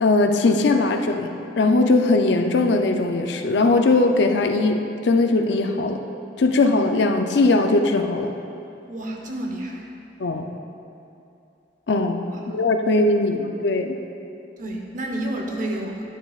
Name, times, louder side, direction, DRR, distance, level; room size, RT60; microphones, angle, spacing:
voice 1, 0.0-6.0 6.4-8.3 10.2-10.4 11.9-12.2 12.5-14.0, left 3 dB, 70° left, 4 dB, 0.5 m, -20 dB
voice 2, 8.9-9.9 12.3-12.6 14.6-16.0, right 1 dB, 45° right, 1 dB, 0.8 m, -30 dB
12.0 x 9.2 x 2.4 m, 2.7 s
head